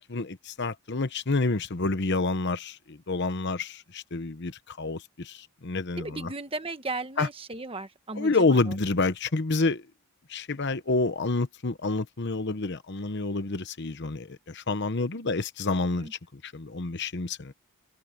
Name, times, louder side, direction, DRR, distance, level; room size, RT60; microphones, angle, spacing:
voice 1, 0.0-6.3 7.2-7.3 8.1-9.8 10.3-17.5, left 3 dB, 50° left, 1.0 m, -28 dB
voice 2, 6.0-8.7 16.0-16.1, right 2 dB, 25° right, 1.4 m, -36 dB
head